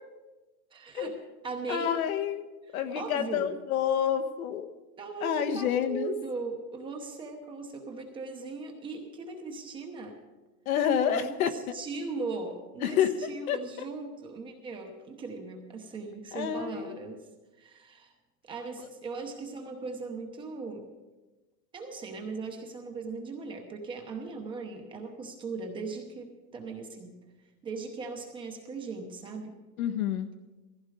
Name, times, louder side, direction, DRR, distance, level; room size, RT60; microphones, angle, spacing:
voice 1, 0.7-1.1 1.4-2.0 2.7-3.5 5.0-10.2 11.1-17.3 17.6-18.1 18.4-20.9 21.7-27.2 27.6-29.6, right 4 dB, 10° right, 2 dB, 0.8 m, -39 dB
voice 2, 1.7-2.4 2.7-4.7 5.2-6.1 10.7-11.5 12.8-13.1 13.5-13.6 16.3-17.0 18.8-18.9 29.8-30.3, left 9 dB, 70° left, 9 dB, 1.3 m, -28 dB
17.0 x 15.0 x 4.9 m, 1.2 s
supercardioid pair, 180°, 44 cm